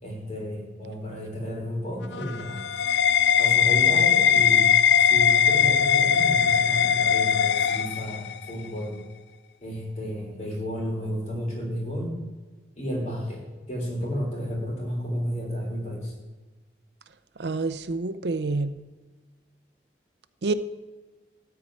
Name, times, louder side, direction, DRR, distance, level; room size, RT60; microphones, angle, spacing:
voice 1, 0.0-2.6 3.4-4.7 5.0-9.0 9.6-12.1 12.8-16.1, equal, 40° left, -2 dB, 3.9 m, -32 dB
sound 1, 2.0-8.5, left 8 dB, 80° left, 0.4 m, -20 dB
voice 2, 17.4-18.7 20.4-20.5, right 3 dB, 75° right, 12 dB, 0.6 m, -27 dB
13.5 x 4.6 x 8.9 m, 1.3 s
head